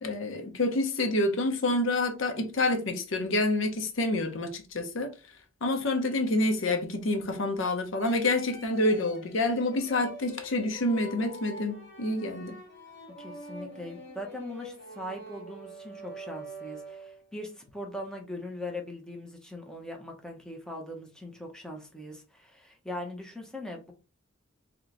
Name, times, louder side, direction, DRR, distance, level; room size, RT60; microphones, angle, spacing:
voice 1, 0.0-5.1 5.6-12.6, left 2 dB, 75° left, 0.8 m, -28 dB
sound 1, 8.0-17.3, equal, 60° left, 1.6 m, -45 dB
voice 2, 13.2-23.9, left 1 dB, 5° left, 0.9 m, -40 dB
3.1 x 3.0 x 3.8 m
head